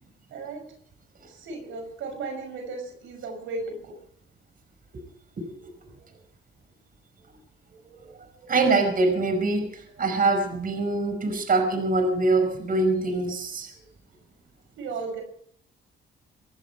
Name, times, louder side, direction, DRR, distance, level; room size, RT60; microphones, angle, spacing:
voice 1, 0.3-0.6 1.2-4.0 14.8-15.2, right 3 dB, 80° right, 5 dB, 5.8 m, -35 dB
voice 2, 8.5-13.7, right 3 dB, 45° right, 6 dB, 5.1 m, -24 dB
26.0 x 11.5 x 4.5 m, 0.62 s
cardioid pair, 90°, 20 cm